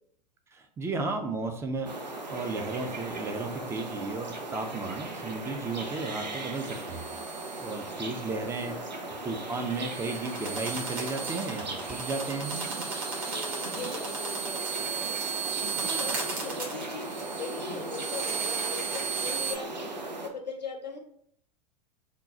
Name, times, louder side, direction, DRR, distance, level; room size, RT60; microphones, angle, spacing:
voice 1, 0.5-7.0 7.6-8.7 9.2-12.5, right 3 dB, 10° right, 5 dB, 0.5 m, -34 dB
sound 1, 1.8-20.3, right 2 dB, 85° right, 0.6 m, -38 dB
sound 2, 6.6-7.9 8.2-8.3 8.6-8.9 9.2-19.5, right 5 dB, 45° right, 1.6 m, -35 dB
voice 2, 8.6-9.0 13.2-15.2 15.6-21.0, left 4 dB, 85° left, 2 dB, 0.7 m, -40 dB
3.7 x 2.3 x 4.0 m, 0.67 s
figure-of-eight pair, 90°, 21 cm